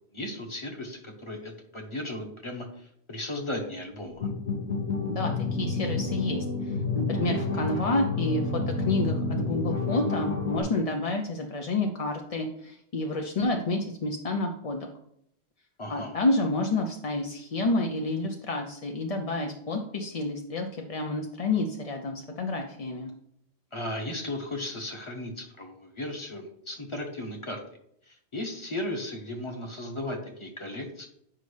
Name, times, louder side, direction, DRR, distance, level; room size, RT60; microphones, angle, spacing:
voice 1, 0.1-4.3 15.8-16.2 23.7-27.6 28.0-31.1, left 1 dB, 30° left, 3 dB, 1.1 m, -36 dB
sound 1, 4.1-10.6, left 3 dB, 75° left, 2.4 m, -29 dB
voice 2, 5.6-14.9 15.9-23.1, left 2 dB, 45° left, 3 dB, 0.5 m, -29 dB
8.6 x 5.2 x 3.3 m, 0.72 s
omnidirectional pair, 1.1 m